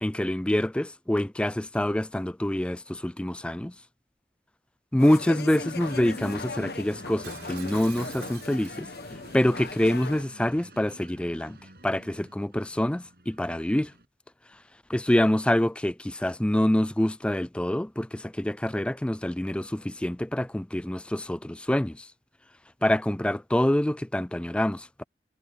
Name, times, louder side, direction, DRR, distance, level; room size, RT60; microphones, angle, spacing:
voice 1, 0.0-3.7 4.9-8.9 9.3-11.6 11.8-13.9 14.9-22.1 22.8-25.0, left 1 dB, 5° left, 0.3 m, -26 dB
sound 1, 5.0-10.2, left 3 dB, 65° left, 1.2 m, -38 dB
sound 2, 5.5-14.0, right 1 dB, 60° right, 7.8 m, -50 dB
Shatter, 7.2-9.0 9.5-9.8, right 11 dB, 80° right, 5.4 m, -47 dB
head